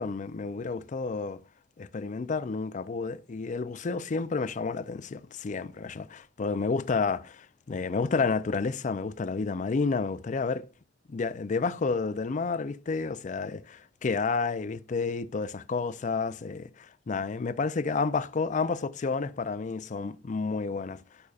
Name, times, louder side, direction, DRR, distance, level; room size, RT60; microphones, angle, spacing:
voice 1, 0.0-1.4 1.8-10.6 11.1-21.0, left 4 dB, 40° left, 0.4 m, -30 dB
11.0 x 5.4 x 2.4 m
head